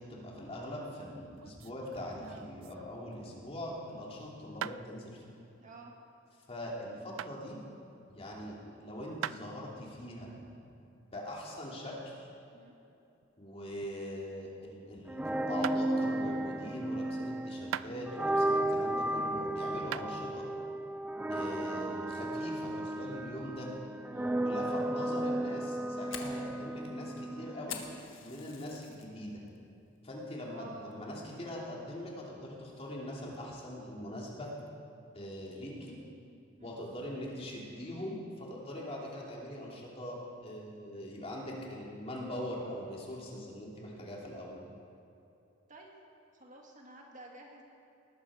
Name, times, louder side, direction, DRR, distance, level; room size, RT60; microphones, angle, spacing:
voice 1, 0.0-5.2 6.5-7.6 8.1-10.3 11.1-12.3 13.4-20.5 21.3-23.7 24.4-27.8 28.2-29.4 30.0-34.5 35.1-36.0 36.6-44.6, left 1 dB, 30° left, -3 dB, 2.9 m, -42 dB
sound 1, 1.2-3.3 4.6-4.8 7.2-7.4 9.2-9.5 12.7-14.1 14.4-14.8 15.6-15.8 17.7-18.3 18.9-19.4 19.9-20.1, right 10 dB, 80° right, 0.3 m, -41 dB
voice 2, 5.6-5.9 12.5-12.8 24.1-24.4 28.3-28.6 30.5-30.9 36.6-36.8 45.7-45.9 46.3-47.6, right 2 dB, 40° right, 0 dB, 1.9 m, -51 dB
sound 2, 15.1-28.0, right 1 dB, 5° right, 0.4 m, -34 dB
Fire, 25.5-29.1 29.5-29.9 30.3-30.4 30.9-31.3, left 7 dB, 80° left, 1.6 m, -46 dB
19.5 x 13.0 x 5.0 m, 2.8 s
head